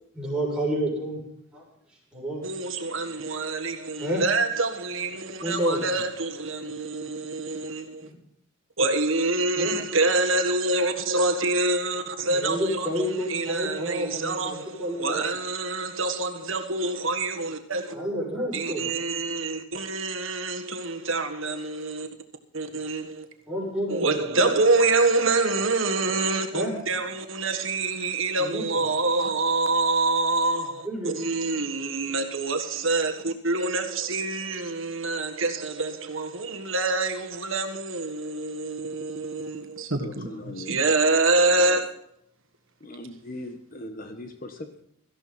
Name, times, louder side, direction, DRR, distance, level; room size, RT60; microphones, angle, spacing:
voice 1, 0.1-1.2 1.5-1.6 2.1-2.4 4.0-4.2 5.4-6.0 8.0-8.1 9.5-9.8 12.3-15.3 16.8-16.9 17.9-18.9 23.5-24.5 26.5-26.7 28.4-28.8 30.6-31.1 31.5-31.6, equal, 5° right, -4 dB, 7.1 m, -30 dB
voice 2, 2.4-8.1 8.8-17.9 18.5-22.1 22.5-23.2 23.9-41.9, right 3 dB, 70° right, 6 dB, 1.6 m, -26 dB
voice 3, 40.0-40.7 42.8-44.8, left 1 dB, 40° left, 6 dB, 1.4 m, -39 dB
17.5 x 14.0 x 4.3 m, 0.73 s
head